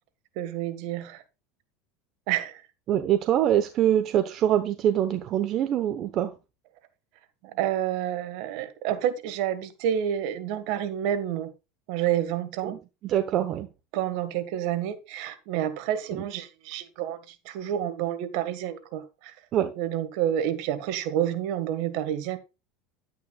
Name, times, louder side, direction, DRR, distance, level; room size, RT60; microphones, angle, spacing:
voice 1, 0.3-1.2 2.3-2.6 7.4-11.5 11.9-12.7 13.9-19.3 19.8-22.4, right 11 dB, 65° right, 1.5 m, -29 dB
voice 2, 2.9-6.3 12.6-12.8 13.0-13.7 16.1-16.2 19.5-19.7, right 11 dB, 45° right, 0.9 m, -24 dB
11.0 x 9.5 x 2.3 m
supercardioid pair, 115°, 0 cm